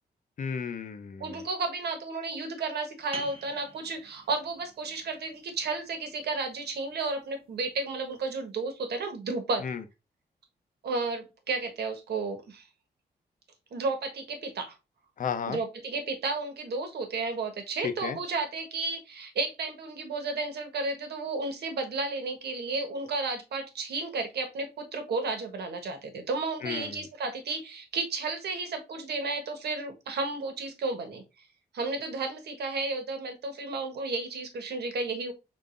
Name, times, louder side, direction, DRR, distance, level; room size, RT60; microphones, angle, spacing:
voice 1, 0.4-1.4 9.6-9.8 15.2-15.6 17.8-18.2 26.6-27.0, left 6 dB, 55° left, 0.7 m, -33 dB
voice 2, 1.2-9.7 10.8-12.7 13.7-14.7 15.5-31.2 31.7-35.3, right 3 dB, 85° right, 1.3 m, -33 dB
sound 1, 3.1-8.5, right 3 dB, 35° right, 0.7 m, -48 dB
4.8 x 3.8 x 2.5 m
wide cardioid pair, 150°, 17 cm